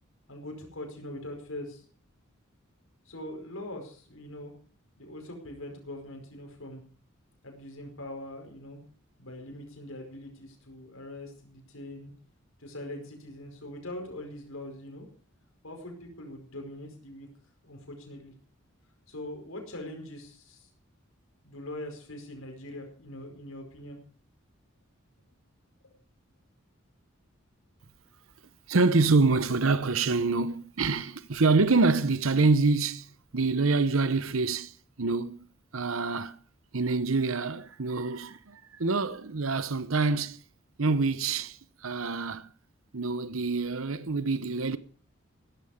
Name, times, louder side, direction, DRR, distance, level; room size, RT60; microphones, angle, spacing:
voice 1, 0.3-1.8 3.0-4.5 5.0-6.8 7.4-8.8 9.2-12.1 12.6-15.1 15.6-17.3 17.6-18.3 19.1-20.7 21.4-24.0, left 1 dB, 85° left, 5.1 m, -42 dB
voice 2, 28.7-35.5 35.7-36.4 36.7-40.4 40.8-42.5 42.9-44.8, right 3 dB, 85° right, 0.9 m, -26 dB
16.0 x 13.0 x 5.1 m
head